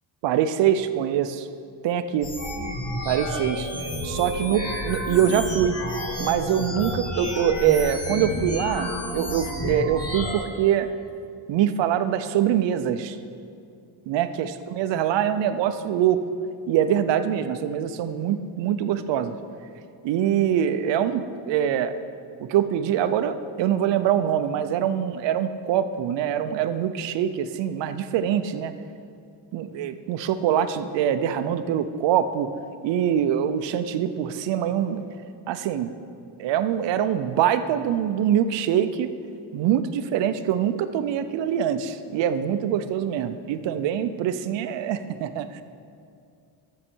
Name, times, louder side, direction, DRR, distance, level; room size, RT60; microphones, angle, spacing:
voice 1, 0.2-1.5 1.8-2.3 3.1-3.7 4.0-5.8 6.2-10.9 11.5-13.2 14.1-14.5 14.8-16.2 16.7-19.3 20.0-21.9 22.4-28.7 29.5-32.5 32.8-35.1 35.5-35.9 36.4-39.1 39.5-45.5, right 9 dB, 65° right, 11 dB, 0.7 m, -24 dB
sound 1, 2.2-10.3, left 1 dB, 30° left, 1.9 m, -30 dB
13.5 x 6.5 x 4.5 m, 2.4 s
cardioid pair, 145°, 47 cm